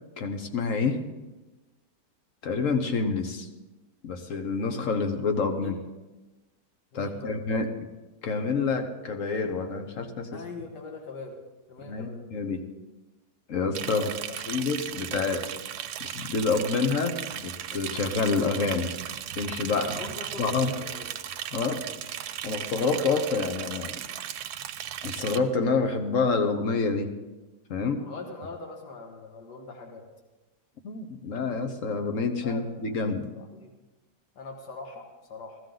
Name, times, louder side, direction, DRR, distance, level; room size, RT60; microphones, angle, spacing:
voice 1, 0.2-1.0 2.4-3.5 4.0-5.8 6.9-7.7 8.2-10.4 11.8-12.6 13.5-14.1 14.5-15.4 16.0-18.9 19.4-20.0 20.4-20.7 21.5-21.8 22.4-23.9 25.0-27.1 27.7-28.0 30.8-33.3, left 4 dB, 55° left, 7 dB, 1.3 m, -27 dB
voice 2, 6.9-7.4 10.3-11.4 11.7-12.2 13.9-14.4 19.7-21.1 28.0-30.0 32.4-32.9 33.3-33.7 34.4-35.6, left 3 dB, 85° left, 2 dB, 2.1 m, -41 dB
Liquid, 13.7-25.4, right 10 dB, 75° right, 1.2 m, -36 dB
15.5 x 13.5 x 3.9 m, 1.1 s
omnidirectional pair, 1.8 m